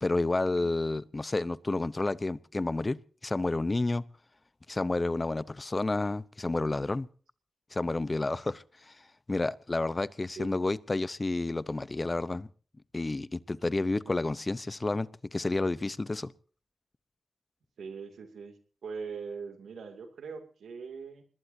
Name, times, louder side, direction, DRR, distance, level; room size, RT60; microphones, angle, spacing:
voice 1, 0.0-4.0 4.7-7.1 7.7-8.9 9.3-12.5 12.9-16.3, left 2 dB, 30° left, 0.8 m, -30 dB
voice 2, 17.8-21.2, right 5 dB, 90° right, 2.6 m, -42 dB
24.5 x 20.0 x 2.8 m
cardioid pair, 60°, 0 cm